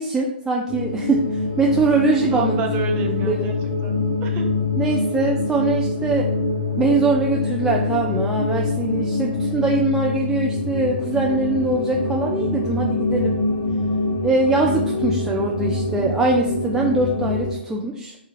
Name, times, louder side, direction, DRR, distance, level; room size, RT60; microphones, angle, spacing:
voice 1, 0.0-2.6 3.2-3.6 4.8-6.3 6.8-13.4 14.2-18.2, right 3 dB, 10° right, -1 dB, 0.4 m, -22 dB
sound 1, 0.7-17.5, left 2 dB, 35° left, 0.8 m, -24 dB
voice 2, 2.3-4.5, right 3 dB, 25° right, 1 dB, 0.8 m, -29 dB
4.4 x 2.4 x 4.7 m, 0.74 s
figure-of-eight pair, 125°, 6 cm